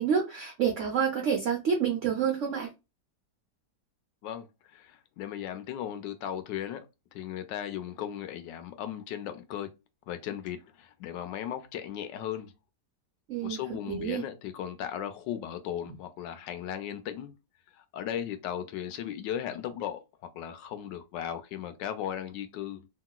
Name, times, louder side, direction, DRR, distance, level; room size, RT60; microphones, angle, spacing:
voice 1, 0.0-2.7 13.3-14.2, right 7 dB, 60° right, 0.8 m, -28 dB
voice 2, 4.2-6.8 7.1-9.7 10.1-12.5 13.4-17.4 17.8-20.0 20.3-22.9, left 10 dB, 85° left, 1.3 m, -36 dB
2.9 x 2.9 x 2.2 m
omnidirectional pair, 1.9 m